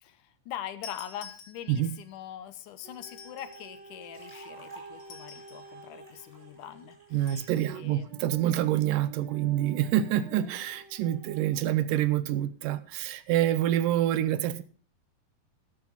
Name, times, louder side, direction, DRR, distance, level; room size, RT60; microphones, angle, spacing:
voice 1, 0.0-8.2, left 11 dB, 75° left, 12 dB, 2.2 m, -43 dB
sound 1, 0.8-2.0 2.9-3.8 5.0-5.8 7.3-7.7, left 5 dB, 90° left, 4.0 m, -48 dB
sound 2, 2.8-11.9 12.6-12.7, right 4 dB, 50° right, 3.1 m, -49 dB
sound 3, 3.9-7.8, right 1 dB, 5° left, 4.6 m, -54 dB
voice 2, 7.1-14.6, right 12 dB, 80° right, 15 dB, 2.3 m, -27 dB
13.5 x 12.0 x 4.0 m, 0.39 s
omnidirectional pair, 4.0 m